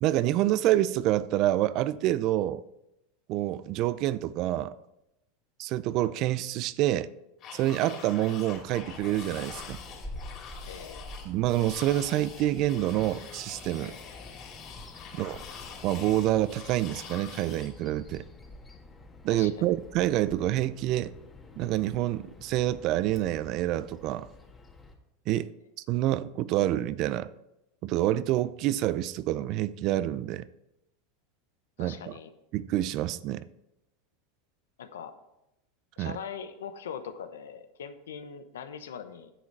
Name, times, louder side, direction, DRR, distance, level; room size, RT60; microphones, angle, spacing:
voice 1, 0.0-2.6 3.3-4.8 5.6-7.1 7.5-9.8 11.2-13.9 15.1-15.4 15.8-18.3 19.2-21.1 21.6-24.3 25.3-25.5 25.9-27.3 27.8-30.5 31.8-32.1 32.5-33.4 36.0-36.1, right 14 dB, 50° right, 0.5 m, -27 dB
sound 1, 7.4-17.7, left 7 dB, 45° left, 3.3 m, -45 dB
Bird vocalization bird call bird song, 8.5-24.9, left 2 dB, 15° left, 1.7 m, -48 dB
voice 2, 10.6-11.2 15.0-15.2 19.3-19.6 31.8-32.3 34.8-35.1 36.0-39.3, left 7 dB, 85° left, 1.0 m, -41 dB
10.0 x 7.5 x 4.7 m
hypercardioid pair, 100°, 0 cm